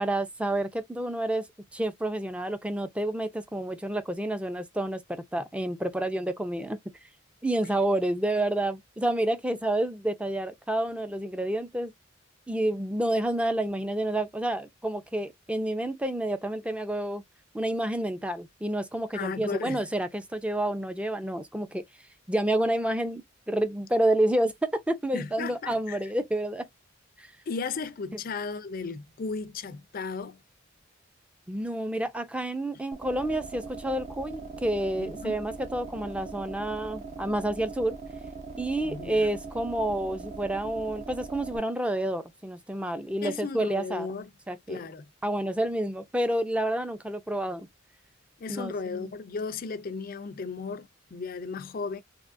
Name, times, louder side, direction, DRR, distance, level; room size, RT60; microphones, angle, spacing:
voice 1, 0.0-1.5 1.7-6.8 7.4-11.9 12.5-17.2 17.5-21.8 22.3-26.7 27.2-27.3 31.5-38.0 38.6-44.2 44.5-44.8 45.2-47.7 48.5-49.1, right 1 dB, 5° right, 0.5 m, -29 dB
voice 2, 19.1-19.8 25.1-26.0 27.5-30.4 35.0-35.4 38.8-39.3 43.2-44.3 44.7-45.1 48.4-52.0, left 4 dB, 45° left, 0.5 m, -35 dB
sound 1, 32.9-41.6, right 4 dB, 35° right, 0.8 m, -41 dB
3.6 x 2.9 x 2.5 m
head